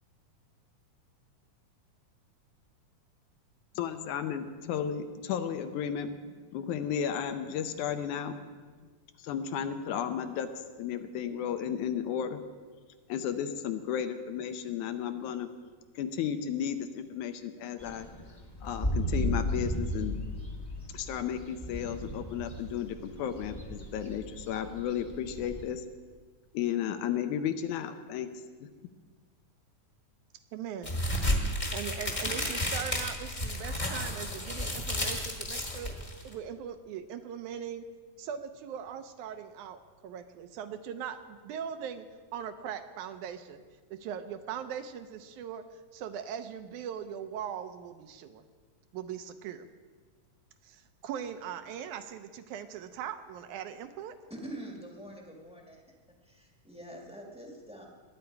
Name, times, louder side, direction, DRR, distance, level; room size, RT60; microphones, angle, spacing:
voice 1, 3.8-6.2 6.5-8.4 9.2-10.5 10.8-12.4 13.1-15.5 16.0-18.1 18.6-20.1 20.9-25.8 26.5-28.3 31.5-31.6, left 8 dB, 75° left, 8 dB, 2.1 m, -33 dB
sound 1, 17.8-25.6, equal, 50° left, 0.4 m, -36 dB
voice 2, 30.5-30.9 31.7-35.9 36.2-37.8 38.2-42.1 42.3-43.6 43.9-45.6 45.9-48.4 48.9-49.7 50.6-54.2, right 8 dB, 80° right, 9 dB, 2.1 m, -40 dB
sound 2, 30.8-36.3, left 1 dB, 25° left, 1.0 m, -32 dB
voice 3, 54.3-55.8 56.2-57.9, right 1 dB, 5° right, -1 dB, 0.8 m, -45 dB
21.0 x 9.8 x 4.7 m, 1.5 s
omnidirectional pair, 3.6 m